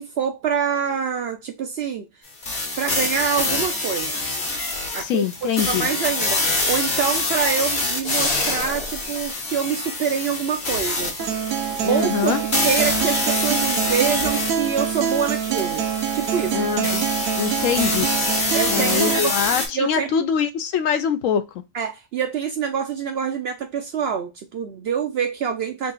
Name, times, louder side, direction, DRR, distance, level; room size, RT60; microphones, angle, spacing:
voice 1, 0.0-2.1 2.8-4.3 4.9-11.2 11.8-12.4 12.6-15.9 16.1-17.0 18.5-19.3 19.7-20.2 21.7-25.9, right 7 dB, 65° right, 0.6 m, -26 dB
sound 1, 2.4-19.7, left 2 dB, 50° left, 1.4 m, -26 dB
voice 2, 5.0-5.9 11.8-12.4 16.5-17.1 17.3-18.1 18.7-21.4, left 8 dB, 70° left, 0.9 m, -23 dB
sound 2, 8.0-9.0, left 2 dB, 30° left, 1.0 m, -26 dB
Acoustic guitar, 11.2-19.2, right 9 dB, 85° right, 1.1 m, -25 dB
3.7 x 2.4 x 3.9 m
omnidirectional pair, 1.4 m